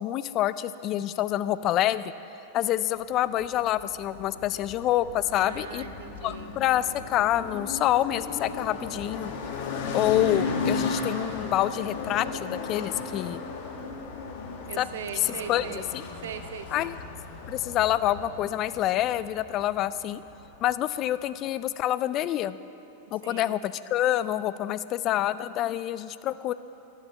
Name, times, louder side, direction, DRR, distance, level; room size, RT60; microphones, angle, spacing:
voice 1, 0.0-2.0 2.5-5.8 6.2-9.3 9.9-13.4 14.8-14.9 15.2-16.0 16.7-17.0 17.5-20.2 20.6-22.6 23.1-26.5, left 13 dB, 40° left, 15 dB, 0.3 m, -27 dB
sound 1, 3.4-20.8, left 4 dB, 60° left, 1.1 m, -35 dB
voice 2, 5.3-6.5 14.7-15.9 16.2-16.9 23.2-23.6, right 7 dB, 80° right, 8 dB, 0.7 m, -40 dB
12.0 x 7.1 x 5.4 m, 2.9 s
hypercardioid pair, 125°, 0 cm